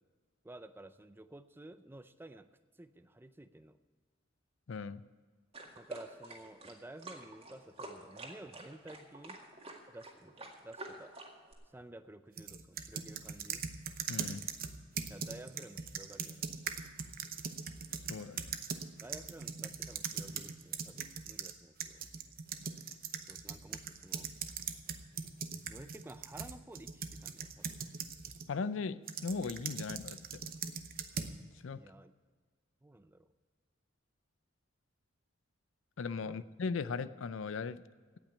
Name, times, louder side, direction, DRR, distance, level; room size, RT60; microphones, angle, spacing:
voice 1, 0.4-2.5 2.7-3.8 5.8-9.4 9.9-11.2 11.7-13.7 15.1-16.8 19.0-22.1 23.3-24.3 25.7-27.8 31.7-32.1 32.8-33.3 36.2-36.4, right 1 dB, 10° right, 12 dB, 0.5 m, -52 dB
voice 2, 4.7-5.0 14.1-14.4 18.1-18.6 28.5-30.4 31.6-31.8 36.0-37.8, left 4 dB, 70° left, 15 dB, 0.5 m, -38 dB
Hot-water bottle shaker loop, 5.5-11.5, right 2 dB, 30° right, 2.0 m, -48 dB
sound 1, 12.4-21.5 21.8-28.5 29.1-31.4, right 6 dB, 45° right, 0.9 m, -41 dB
17.0 x 6.0 x 9.3 m, 1.5 s
head